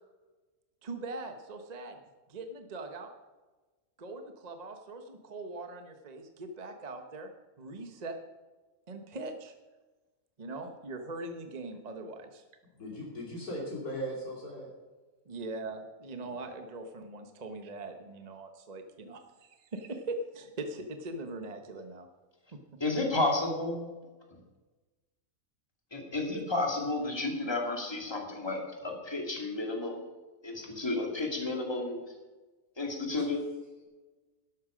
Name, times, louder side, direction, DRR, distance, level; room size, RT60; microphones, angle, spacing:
voice 1, 0.8-2.0 2.3-3.1 4.0-7.3 7.6-8.2 8.9-9.5 10.4-12.3 15.3-22.1 22.5-22.6, right 2 dB, 30° right, 5 dB, 1.0 m, -41 dB
voice 2, 12.8-14.7, equal, 80° left, -3 dB, 3.5 m, -38 dB
voice 3, 22.8-23.9 25.9-30.0 30.4-32.0 32.8-33.4, left 2 dB, 15° left, 1 dB, 2.3 m, -32 dB
12.5 x 11.5 x 5.1 m, 1.2 s
omnidirectional pair, 1.6 m